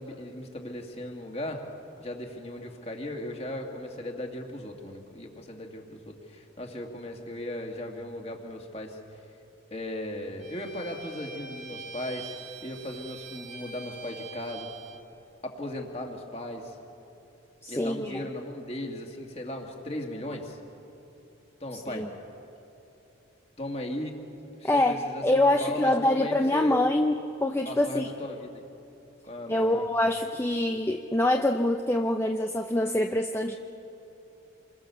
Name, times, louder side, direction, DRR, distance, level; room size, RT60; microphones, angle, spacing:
voice 1, 0.0-1.7 2.0-9.0 9.7-12.4 12.6-14.7 15.4-16.8 17.7-20.6 21.6-22.1 23.6-24.2 24.6-26.8 27.7-28.6 29.2-29.8, left 1 dB, 30° left, 2 dB, 2.3 m, -37 dB
Bowed string instrument, 10.4-15.0, right 4 dB, 70° right, 2.6 m, -44 dB
voice 2, 17.6-18.2 21.9-22.1 24.6-28.1 29.5-33.5, left 1 dB, 10° left, 4 dB, 0.6 m, -25 dB
28.0 x 22.5 x 7.0 m, 2.9 s
head